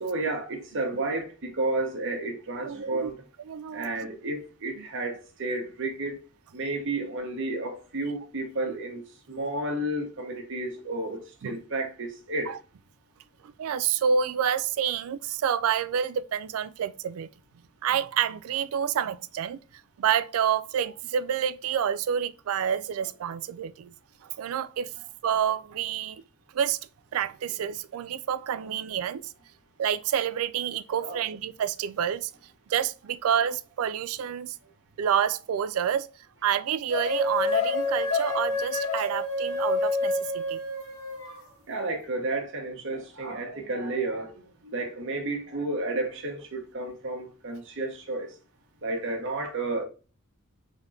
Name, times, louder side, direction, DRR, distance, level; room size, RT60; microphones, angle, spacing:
voice 1, 0.0-3.2 3.7-6.2 6.5-12.5 31.0-31.3 41.7-48.3 48.8-49.8, right 2 dB, 60° right, 1.1 m, -32 dB
voice 2, 2.6-3.1 3.5-3.9 4.8-4.9 11.4-11.6 12.5-12.6 13.4-17.3 17.8-23.9 24.2-24.9 25.2-26.2 26.5-26.8 27.1-29.3 29.8-32.3 32.7-34.6 35.0-36.1 36.4-40.6, right 8 dB, 85° right, 0.3 m, -28 dB
sound 1, 36.9-41.4, left 3 dB, 85° left, 1.4 m, -28 dB
3.7 x 3.3 x 2.6 m
head